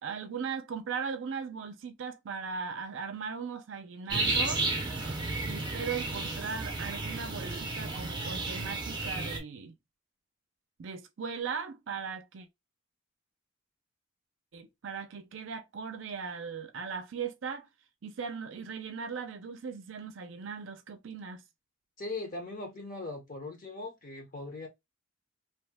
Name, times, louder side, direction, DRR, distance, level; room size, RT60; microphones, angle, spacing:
voice 1, 0.0-4.7 5.4-9.8 10.8-12.5 14.5-17.7 18.0-21.4, right 6 dB, 65° right, 0.4 m, -38 dB
sound 1, 4.1-9.4, right 2 dB, 20° right, 0.6 m, -33 dB
voice 2, 22.0-24.7, left 2 dB, 40° left, 0.6 m, -39 dB
2.8 x 2.1 x 3.3 m
head